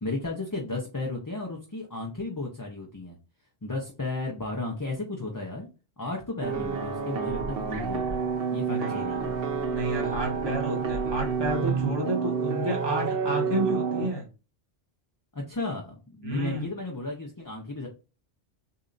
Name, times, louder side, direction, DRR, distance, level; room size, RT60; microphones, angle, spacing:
voice 1, 0.0-3.2 3.6-5.7 6.0-8.2 8.5-9.4 15.3-17.9, left 2 dB, 20° left, 0 dB, 0.8 m, -34 dB
sound 1, 6.4-14.1, right 5 dB, 60° right, 1.0 m, -29 dB
voice 2, 8.7-9.4 9.7-14.3 16.2-16.7, right 1 dB, 25° right, -2 dB, 1.4 m, -31 dB
6.7 x 2.7 x 2.6 m, 0.31 s
omnidirectional pair, 1.1 m